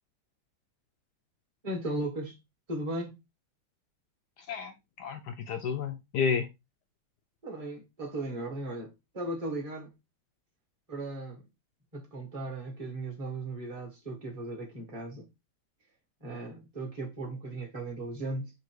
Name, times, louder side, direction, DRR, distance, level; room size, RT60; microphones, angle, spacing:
voice 1, 1.6-2.4 2.7-3.2 7.4-9.9 10.9-11.4 11.9-15.3 16.2-18.5, right 2 dB, 20° right, 1.2 m, -37 dB
voice 2, 4.5-6.5, left 6 dB, 75° left, 0.9 m, -31 dB
3.8 x 2.9 x 4.5 m
omnidirectional pair, 2.3 m